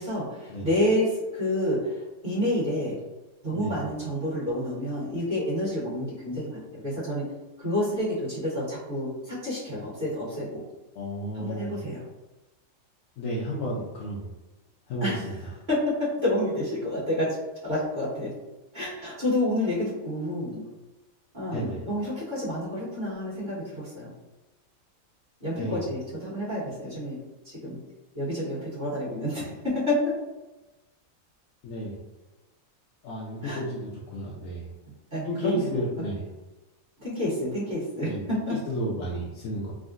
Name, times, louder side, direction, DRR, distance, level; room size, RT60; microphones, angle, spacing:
voice 1, 0.0-3.0 3.4-7.2 7.6-10.6 11.3-12.0 15.0-15.3 15.7-17.4 17.6-18.3 18.7-20.6 21.3-24.1 25.4-27.2 27.4-27.8 28.1-30.0 33.4-33.6 35.1-36.1 37.0-38.6, left 1 dB, 40° right, -9 dB, 1.3 m, -29 dB
voice 2, 11.0-11.7 13.2-14.3 14.9-15.3 21.5-21.8 25.6-25.8 31.6-32.0 33.0-34.6 35.2-36.2 38.0-38.2 38.7-39.7, equal, 75° left, -5 dB, 0.9 m, -32 dB
3.6 x 2.1 x 2.4 m, 1.1 s
omnidirectional pair, 1.4 m